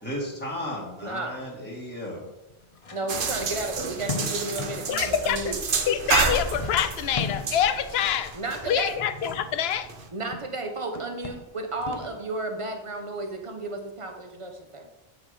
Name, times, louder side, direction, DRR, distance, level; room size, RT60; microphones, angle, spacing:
voice 1, 0.0-2.3, left 1 dB, 10° left, -4 dB, 1.7 m, -34 dB
voice 2, 1.0-1.4 2.9-5.6 8.3-9.1 10.1-14.9, right 2 dB, 30° right, 4 dB, 1.0 m, -33 dB
sound 1, 1.4-1.5 2.5-5.0 6.0-7.8 8.9-10.6 10.8-12.3, left 4 dB, 40° left, 0.6 m, -38 dB
sound 2, 3.1-10.1, right 5 dB, 55° right, 0.9 m, -30 dB
voice 3, 4.9-5.6 5.9-8.4 8.6-9.9, left 9 dB, 70° left, 12 dB, 0.8 m, -26 dB
8.7 x 3.9 x 4.9 m, 0.98 s
omnidirectional pair, 1.1 m